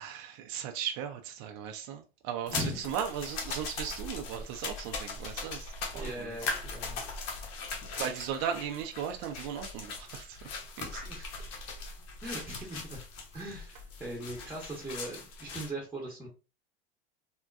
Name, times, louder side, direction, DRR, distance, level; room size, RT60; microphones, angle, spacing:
voice 1, 0.0-6.4 8.0-10.4 10.9-11.0 12.3-12.4, right 8 dB, 55° right, 0.5 m, -37 dB
sound 1, 2.5-15.7, left 4 dB, 55° left, 1.0 m, -40 dB
voice 2, 2.5-2.9 5.9-7.0 11.0-11.3 12.2-13.0 13.3-16.3, right 1 dB, 5° right, 0.9 m, -39 dB
3.6 x 2.2 x 2.4 m
hypercardioid pair, 105°, 29 cm